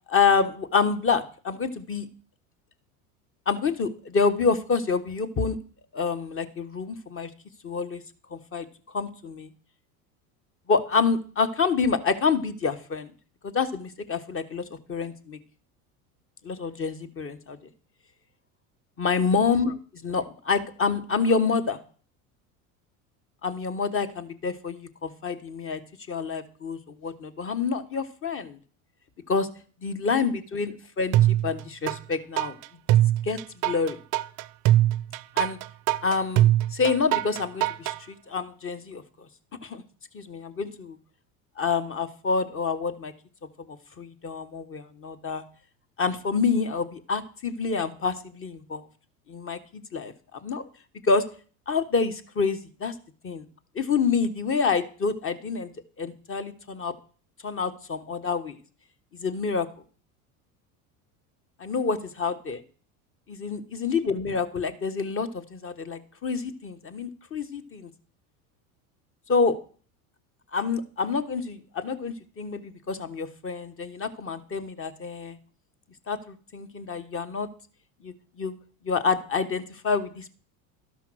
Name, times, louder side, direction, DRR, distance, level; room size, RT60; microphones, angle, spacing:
voice 1, 0.1-2.1 3.5-5.6 5.9-7.3 7.6-8.0 8.3-8.7 8.9-9.5 10.7-13.1 13.4-15.4 16.4-17.6 19.0-21.8 23.4-25.8 26.1-28.6 29.3-29.5 29.8-32.6 33.2-33.4 33.6-34.0 35.3-35.6 36.0-39.0 39.6-39.8 40.1-41.0 41.6-43.1 43.6-45.4 46.0-48.8 49.3-50.1 50.4-50.6 51.0-51.3 51.7-52.9 53.2-53.4 53.7-55.7 56.0-56.9 57.4-58.6 59.1-59.7 61.6-62.6 63.3-67.9 69.3-69.6 70.5-75.4 76.1-77.5 78.0-78.5 78.8-80.3, left 5 dB, 30° left, 11 dB, 1.2 m, -27 dB
sound 1, 31.1-32.0 32.4-38.0, right 14 dB, 45° right, 0.5 m, -22 dB
12.5 x 5.6 x 6.2 m, 0.42 s
supercardioid pair, 95°, 43 cm